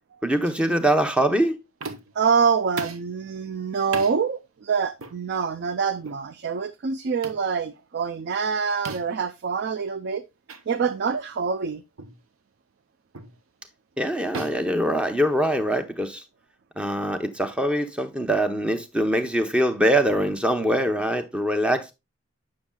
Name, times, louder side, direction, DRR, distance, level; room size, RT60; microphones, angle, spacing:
voice 1, 0.2-1.6 14.0-16.2 16.8-21.9, right 1 dB, 5° right, 0.7 m, -23 dB
sound 1, 1.8-2.2 2.8-3.1 3.9-4.2 5.0-5.2 6.0-6.2 7.2-7.5 8.8-9.2 10.5-10.6 11.1-11.2 12.0-12.2 13.1-13.4 14.3-15.6, right 4 dB, 80° right, 0.9 m, -37 dB
voice 2, 2.2-10.3 10.7-11.8, right 6 dB, 55° right, 0.4 m, -25 dB
8.7 x 6.3 x 2.2 m
head